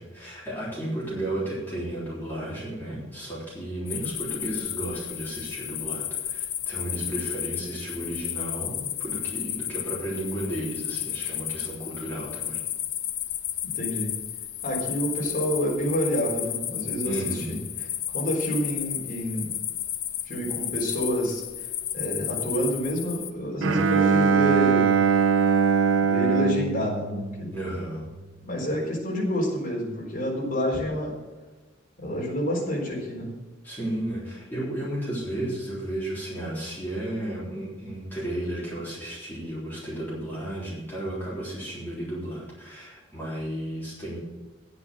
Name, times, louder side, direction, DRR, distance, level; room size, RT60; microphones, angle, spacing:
voice 1, 0.0-12.6 17.0-17.6 27.5-28.1 33.6-44.2, right 1 dB, 10° left, -8 dB, 3.7 m, -33 dB
sound 1, 3.9-23.3, left 11 dB, 65° left, 0.7 m, -33 dB
voice 2, 13.6-14.1 14.6-17.6 18.1-19.5 20.3-21.4 21.9-25.0 26.0-27.5 28.4-31.2 32.0-33.3, equal, 45° left, -3 dB, 4.0 m, -28 dB
Bowed string instrument, 23.6-28.0, right 5 dB, 80° right, 0.6 m, -22 dB
9.8 x 8.3 x 6.3 m, 1.2 s
head